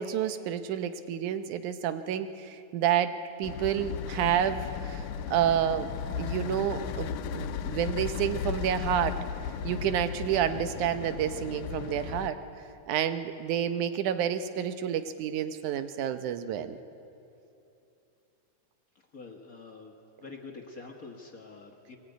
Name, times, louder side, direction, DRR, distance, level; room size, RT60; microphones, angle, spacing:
voice 1, 0.0-5.1 5.3-9.2 9.6-12.4 12.9-16.8, right 9 dB, 80° right, 10 dB, 2.3 m, -29 dB
sound 1, 3.4-12.3, left 8 dB, 80° left, 2.2 m, -35 dB
voice 2, 19.1-19.9 20.2-22.0, left 4 dB, 35° left, 1 dB, 1.6 m, -46 dB
21.5 x 18.5 x 9.3 m, 2.8 s
omnidirectional pair, 3.5 m